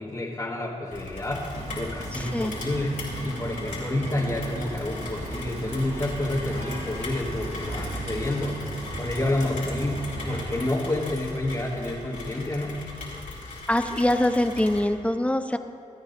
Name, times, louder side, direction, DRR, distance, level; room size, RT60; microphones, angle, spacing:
voice 1, 0.0-1.5 1.8-3.0 3.2-8.6 9.0-12.8, left 1 dB, 25° left, -5 dB, 1.7 m, -29 dB
Rain, 0.9-14.8, left 2 dB, 80° left, 3.4 m, -39 dB
sound 1, 1.5-10.7, right 2 dB, 50° right, 1.3 m, -37 dB
voice 2, 2.1-2.5 13.7-15.6, left 1 dB, 10° left, 8 dB, 0.8 m, -24 dB
25.5 x 9.6 x 2.7 m, 2.3 s
cardioid pair, 65°, 14 cm